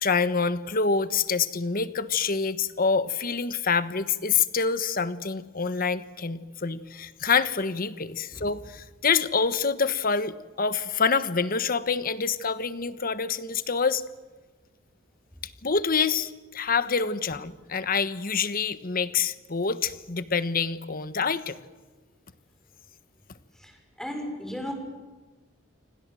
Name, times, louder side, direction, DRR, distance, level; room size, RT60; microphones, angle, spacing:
voice 1, 0.0-14.0 15.6-21.6, left 5 dB, 50° left, 13 dB, 1.3 m, -26 dB
voice 2, 23.5-24.7, left 1 dB, 5° left, 4 dB, 6.3 m, -36 dB
29.0 x 25.0 x 7.8 m, 1.3 s
head